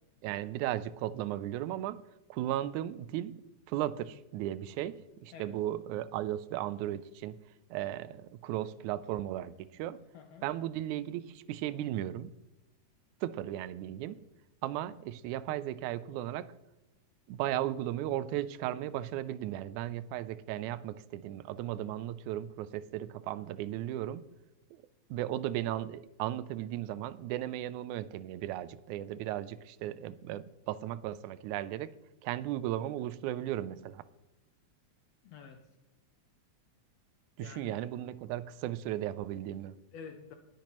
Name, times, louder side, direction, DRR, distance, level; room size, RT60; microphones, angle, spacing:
voice 1, 0.2-2.0 2.3-3.4 3.7-7.4 7.7-10.0 10.4-12.3 13.2-14.2 14.6-16.5 17.3-24.3 25.1-31.9 32.2-34.0 37.4-39.8, right 13 dB, 85° right, 16 dB, 2.0 m, -36 dB
voice 2, 10.1-10.5 35.2-35.7 37.4-37.8 39.9-40.3, left 6 dB, 70° left, 6 dB, 1.7 m, -48 dB
19.5 x 8.3 x 3.0 m, 1.0 s
omnidirectional pair, 3.4 m